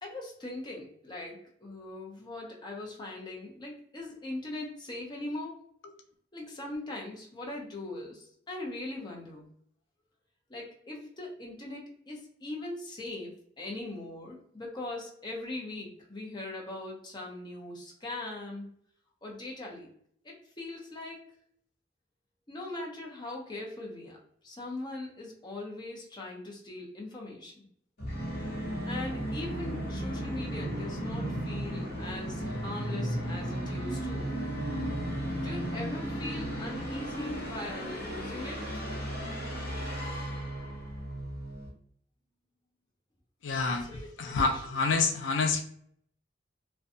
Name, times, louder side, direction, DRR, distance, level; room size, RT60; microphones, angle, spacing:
voice 1, 0.0-5.6 6.3-9.5 10.5-18.7 19.2-19.9 20.2-21.2 22.5-24.2 24.4-27.7 28.9-34.3 35.4-38.8 43.7-44.4, left 2 dB, 25° left, 0.6 m, -40 dB
Musical instrument, 28.0-41.7, equal, 55° left, 0.9 m, -35 dB
voice 2, 43.4-45.6, left 4 dB, 90° left, 0.4 m, -28 dB
2.5 x 2.2 x 2.5 m
head